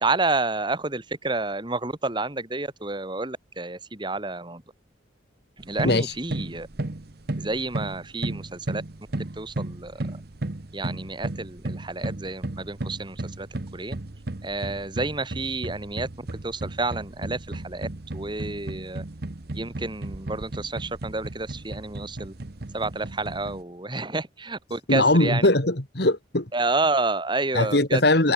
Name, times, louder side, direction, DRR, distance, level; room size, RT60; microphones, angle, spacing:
voice 1, 0.0-4.6 5.6-6.7 7.4-8.8 9.4-10.0 10.7-13.5 13.7-14.0 14.4-19.0 19.5-22.3 22.7-25.5 26.5-28.0, right 3 dB, 25° right, 1.9 m, -29 dB
sound 1, 5.6-23.6, right 2 dB, 55° right, 1.1 m, -35 dB
voice 2, 24.9-26.5 27.5-28.3, left 2 dB, 60° left, 2.7 m, -20 dB
head